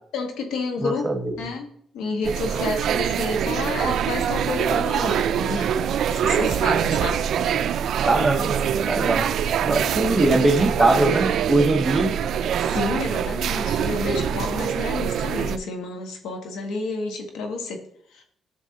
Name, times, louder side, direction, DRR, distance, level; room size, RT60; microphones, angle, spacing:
voice 1, 0.1-1.1 1.4-1.7 1.9-5.7 6.1-7.2 8.5-8.7 9.2-9.3 10.0-10.5 10.8-11.2 12.6-17.8 18.1-18.2, left 3 dB, 85° left, 4 dB, 1.6 m, -30 dB
voice 2, 0.8-1.3 8.0-9.3 9.6-12.1, right 2 dB, 20° right, 5 dB, 1.3 m, -21 dB
sound 1, 2.2-15.6, right 8 dB, 70° right, 0.5 m, -24 dB
11.5 x 6.9 x 2.9 m, 0.65 s
cardioid pair, 90°, 0 cm